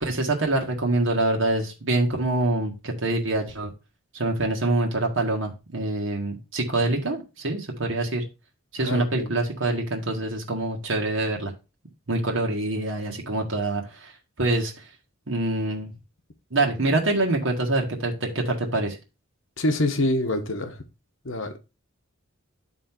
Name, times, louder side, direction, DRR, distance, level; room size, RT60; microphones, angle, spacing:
voice 1, 0.0-3.7 4.1-8.2 8.7-11.5 12.1-14.1 14.4-14.9 15.3-15.9 16.5-19.0, right 2 dB, 60° right, 1.6 m, -25 dB
voice 2, 8.8-9.4 19.6-20.8 21.2-21.6, left 1 dB, 60° left, 1.2 m, -26 dB
10.5 x 3.9 x 4.4 m
head